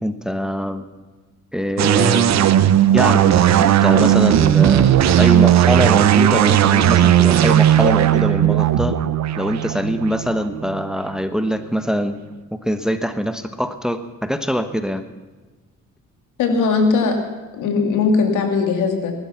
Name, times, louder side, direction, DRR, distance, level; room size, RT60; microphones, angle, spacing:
voice 1, 0.0-0.8 1.5-2.5 2.9-4.9 5.2-9.0 9.4-12.2 12.5-15.0, equal, ahead, 9 dB, 1.1 m, -23 dB
sound 1, 1.8-11.2, right 11 dB, 60° right, 0.9 m, -15 dB
voice 2, 16.4-17.2 17.5-19.1, left 4 dB, 85° left, 4 dB, 2.8 m, -19 dB
19.0 x 12.0 x 5.9 m, 1.3 s
cardioid pair, 90°, 30 cm